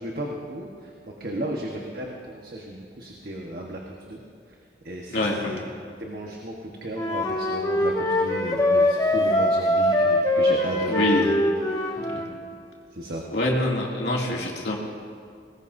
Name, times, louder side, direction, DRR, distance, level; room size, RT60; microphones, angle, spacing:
voice 1, 0.0-4.2 4.5-4.6 4.8-5.6 6.0-11.3 11.8-11.9 12.9-13.2, right 1 dB, 55° right, -1 dB, 1.4 m, -34 dB
voice 2, 5.1-5.5 10.9-11.3 12.0-12.2 13.3-14.8, left 1 dB, 75° left, -2 dB, 2.6 m, -25 dB
Wind instrument woodwind instrument, 7.0-12.3, left 1 dB, 20° left, 1.3 m, -23 dB
23.0 x 19.5 x 2.7 m, 2.2 s
head